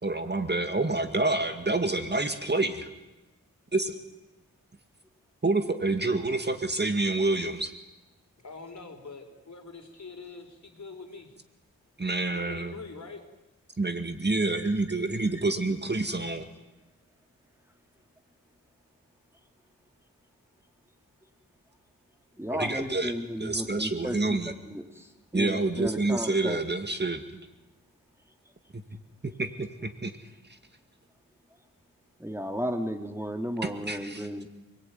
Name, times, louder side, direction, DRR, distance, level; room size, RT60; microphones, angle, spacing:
voice 1, 0.0-2.9 3.7-3.9 5.4-7.7 12.0-12.8 13.8-16.5 22.5-24.5 25.3-27.2 28.7-28.8 29.2-30.6 33.6-34.3, right 2 dB, 30° right, 7 dB, 2.1 m, -28 dB
voice 2, 8.4-11.4 12.2-13.2, left 4 dB, 55° left, 5 dB, 4.8 m, -44 dB
voice 3, 22.4-24.2 24.7-25.1 25.3-26.6 32.2-34.5, equal, 5° right, 5 dB, 2.5 m, -33 dB
28.5 x 21.0 x 9.5 m, 1.0 s
wide cardioid pair, 95°, 34 cm